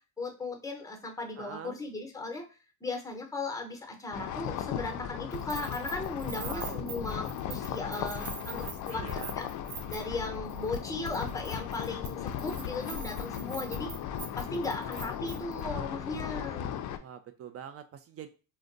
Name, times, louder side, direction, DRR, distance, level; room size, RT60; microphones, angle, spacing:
voice 1, 0.2-2.4 2.8-9.4 9.9-13.9 14.4-16.7, left 3 dB, 5° left, 3 dB, 0.8 m, -37 dB
voice 2, 1.4-1.8 6.3-6.9 8.6-9.4 17.0-18.3, right 8 dB, 35° right, 9 dB, 0.4 m, -44 dB
sound 1, 4.1-17.0, left 9 dB, 45° left, 0.4 m, -37 dB
Keys jangling, 5.3-10.2 10.5-10.8 11.1-15.6, right 8 dB, 65° right, 0.9 m, -44 dB
2.5 x 2.2 x 3.8 m, 0.33 s
supercardioid pair, 95°, 45 cm